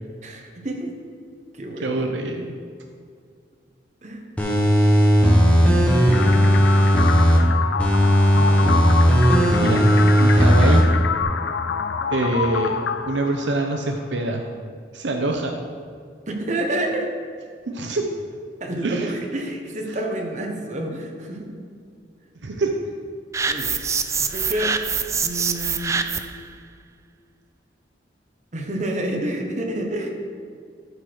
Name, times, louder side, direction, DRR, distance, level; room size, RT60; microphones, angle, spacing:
voice 1, 0.2-1.0 1.5-2.0 4.0-4.2 5.7-5.8 8.4-8.8 16.3-17.1 18.6-21.6 23.4-23.7 24.2-24.7 25.2-26.0 28.5-30.1, right 1 dB, 40° right, 1 dB, 1.1 m, -29 dB
voice 2, 1.8-2.5 9.6-9.9 10.2-10.9 12.1-12.8 13.1-14.4 14.9-15.6 17.7-18.0 18.8-19.2 22.4-22.7, right 2 dB, 80° right, 3 dB, 0.7 m, -24 dB
sound 1, 4.4-7.4 7.8-10.8 11.2-11.3, equal, 10° left, 1.2 m, -16 dB
sound 2, 6.1-14.1, left 6 dB, 80° left, 0.4 m, -27 dB
sound 3, 23.3-26.4, right 5 dB, 15° right, 0.3 m, -25 dB
12.5 x 4.8 x 4.6 m, 2.2 s
head